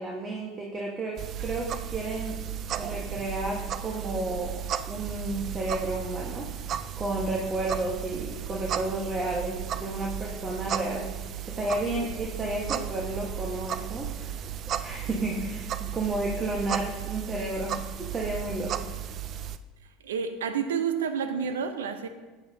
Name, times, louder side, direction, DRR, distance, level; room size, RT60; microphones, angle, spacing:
voice 1, 0.0-2.4 2.8-6.5 7.0-11.1 11.5-14.4 14.8-18.7, right 2 dB, 25° right, -2 dB, 1.4 m, -32 dB
sound 1, 1.2-19.6, right 9 dB, 45° right, 0.4 m, -35 dB
voice 2, 20.0-22.1, right 7 dB, 80° right, 10 dB, 0.8 m, -29 dB
12.0 x 8.6 x 2.8 m, 1.3 s
hypercardioid pair, 80°, 0 cm